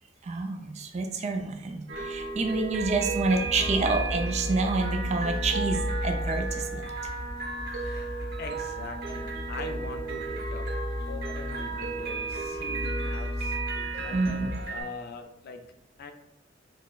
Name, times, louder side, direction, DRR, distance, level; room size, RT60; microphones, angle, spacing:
voice 1, 0.3-6.8 14.1-14.5, right 3 dB, 35° right, 5 dB, 0.3 m, -28 dB
sound 1, 1.9-14.8, right 4 dB, 60° right, 0.8 m, -35 dB
sound 2, 2.7-14.6, left 1 dB, 40° left, 1.1 m, -35 dB
voice 2, 7.7-10.7 11.1-13.6 14.0-15.6 16.0-16.1, left 4 dB, 55° left, 5 dB, 0.4 m, -42 dB
5.9 x 2.0 x 2.3 m, 0.88 s
head